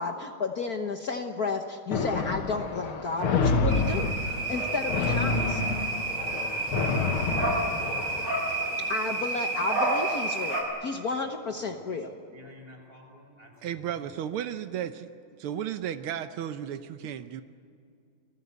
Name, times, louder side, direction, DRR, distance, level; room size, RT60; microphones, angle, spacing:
voice 1, 0.0-4.1 4.5-5.6 8.9-12.1, left 4 dB, 50° left, 5 dB, 1.5 m, -32 dB
sound 1, 1.9-8.3, left 4 dB, 80° left, 2.4 m, -28 dB
sound 2, 3.7-10.6, right 2 dB, 55° right, 5.9 m, -30 dB
voice 2, 3.8-4.8 6.3-8.7 11.6-14.0, equal, 25° right, 1 dB, 6.3 m, -51 dB
voice 3, 13.6-15.1 15.4-17.4, right 10 dB, 85° right, 10 dB, 1.7 m, -34 dB
29.0 x 19.5 x 8.1 m, 2.4 s
omnidirectional pair, 2.3 m